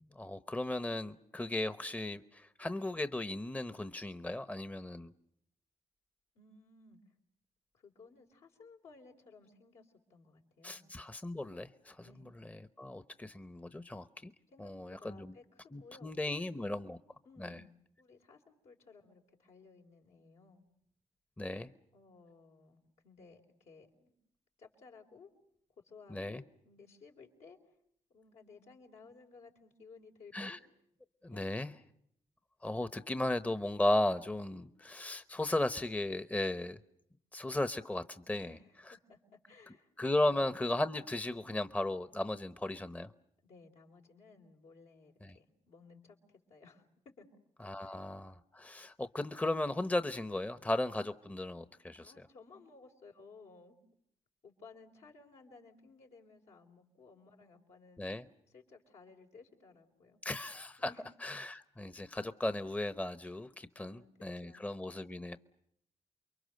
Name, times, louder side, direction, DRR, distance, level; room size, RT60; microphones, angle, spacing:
voice 1, 0.0-5.1 10.6-12.1 12.4-14.3 14.6-15.3 15.7-17.0 17.4-17.6 21.4-21.7 26.1-26.4 30.3-30.6 31.2-31.7 32.6-36.8 37.3-38.5 38.9-39.0 40.0-43.1 45.2-45.3 47.6-52.1 58.0-58.3 60.2-60.9 61.2-65.4, left 1 dB, 15° left, 11 dB, 0.9 m, -36 dB
voice 2, 6.3-7.0 7.7-10.9 12.0-12.3 14.5-15.4 15.8-16.8 17.2-20.6 21.9-24.1 24.6-25.3 25.8-27.6 28.1-30.6 31.3-31.8 38.3-40.5 43.4-46.9 47.2-47.3 47.8-48.0 52.0-53.8 54.4-58.0 58.5-60.2 60.8-61.0 63.8-64.7, left 4 dB, 75° left, 1 dB, 4.0 m, -58 dB
29.0 x 23.0 x 6.6 m, 0.74 s
cardioid pair, 65°, 12 cm